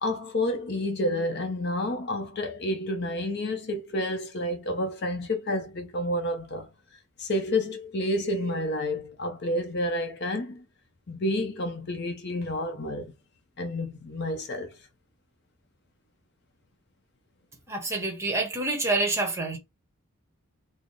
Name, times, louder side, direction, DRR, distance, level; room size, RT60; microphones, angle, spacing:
voice 1, 0.0-6.7 7.2-10.6 11.1-13.1 13.6-14.7, left 1 dB, 50° left, 0.6 m, -29 dB
voice 2, 17.7-19.6, right 2 dB, 15° right, 1.0 m, -27 dB
3.5 x 2.0 x 3.8 m
head